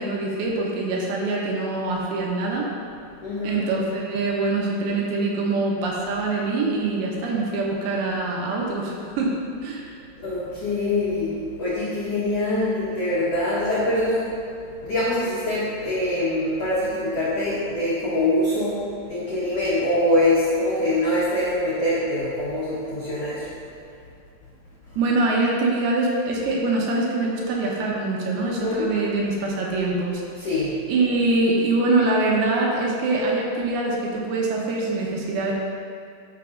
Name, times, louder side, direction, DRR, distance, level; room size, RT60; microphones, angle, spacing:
voice 1, 0.0-2.7 3.4-9.4 9.6-10.0 25.0-30.2 30.9-35.5, right 2 dB, 75° right, -2 dB, 2.6 m, -24 dB
voice 2, 3.2-3.6 10.2-14.3 14.8-23.5 28.4-28.9 30.4-30.8, left 1 dB, 85° left, -9 dB, 1.4 m, -24 dB
12.5 x 5.8 x 2.5 m, 2.6 s
omnidirectional pair, 4.9 m